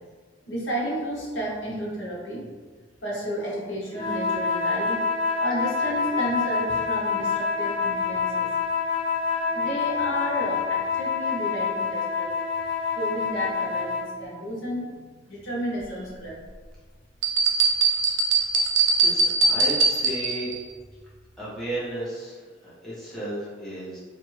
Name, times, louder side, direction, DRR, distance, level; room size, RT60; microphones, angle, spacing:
voice 1, 0.5-2.4 3.0-5.0 5.4-8.5 8.9-9.0 9.4-12.3 12.9-16.3, equal, 80° left, -5 dB, 1.0 m, -32 dB
sound 1, 3.9-14.1, left 5 dB, 25° left, 0.5 m, -27 dB
sound 2, 17.2-20.6, right 3 dB, 80° right, 0.5 m, -21 dB
voice 2, 19.0-20.5 21.4-24.0, right 1 dB, 5° left, -10 dB, 1.1 m, -34 dB
2.9 x 2.5 x 3.1 m, 1.5 s
head